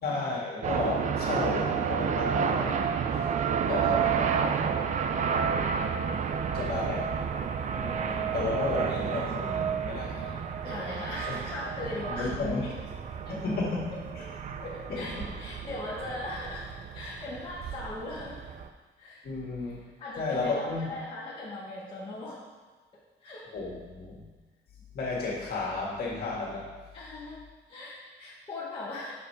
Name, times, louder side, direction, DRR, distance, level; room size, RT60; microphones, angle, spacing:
voice 1, 0.0-2.9 3.7-4.4 6.5-7.1 7.7-10.4 11.3-11.4 12.1-12.6 13.3-13.9 14.9-15.3 19.2-19.8 20.2-21.0 23.5-24.2 24.9-26.7, left 3 dB, 50° left, -4 dB, 1.8 m, -33 dB
sound 1, 0.6-18.7, right 7 dB, 40° right, 0.4 m, -31 dB
voice 2, 10.6-12.7 13.2-13.4 14.6-16.7 16.9-18.4 19.0-19.2 20.0-22.4 23.2-23.4 26.9-27.4 27.7-29.1, left 2 dB, 25° left, -8 dB, 1.2 m, -38 dB
6.7 x 4.9 x 4.7 m, 1.3 s
cardioid pair, 180°, 20 cm